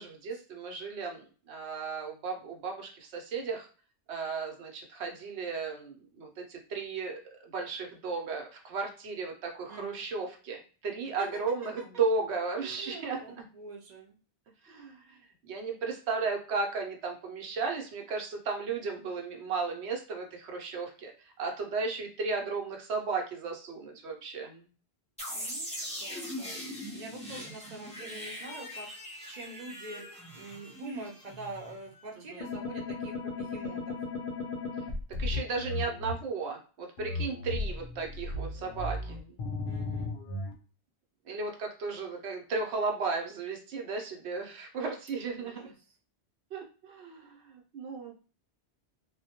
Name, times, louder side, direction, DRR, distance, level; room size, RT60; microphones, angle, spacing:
voice 1, 0.0-3.7 4.1-13.2 14.6-15.2 15.4-24.7 32.3-32.4 35.2-39.4 41.3-45.7 46.5-48.1, right 4 dB, 80° right, 2 dB, 0.9 m, -35 dB
voice 2, 9.7-10.0 11.2-11.3 12.5-14.1 25.3-26.6 26.9-28.9 29.3-30.0 30.3-34.0 39.7-40.1 45.4-45.7, right 2 dB, 50° right, 1 dB, 0.6 m, -45 dB
sound 1, 25.2-32.0, equal, 10° left, 0.5 m, -41 dB
sound 2, 32.4-36.1 37.0-40.5, left 3 dB, 60° left, 0.6 m, -35 dB
2.1 x 2.1 x 2.8 m, 0.37 s
omnidirectional pair, 1.1 m